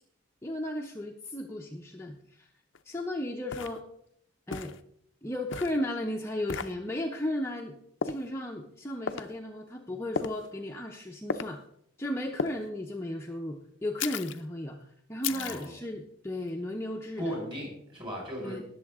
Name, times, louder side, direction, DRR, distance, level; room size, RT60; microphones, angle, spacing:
voice 1, 0.4-2.5 2.8-3.8 4.5-4.7 5.2-7.8 8.0-11.6 12.0-14.8 15.1-17.3 18.4-18.6, left 1 dB, 15° left, 1 dB, 0.7 m, -35 dB
sound 1, 2.7-2.8 3.5-3.8 4.5-4.8 5.5-5.8 6.5-6.7 8.0-8.2 9.1-9.3 10.1-10.5 11.3-11.5 12.4-12.6 14.0-14.4 15.2-15.7, left 5 dB, 70° left, 0.6 m, -34 dB
voice 2, 15.3-15.7 17.2-18.6, equal, 25° right, -2 dB, 5.3 m, -37 dB
19.0 x 7.1 x 3.6 m, 0.70 s
head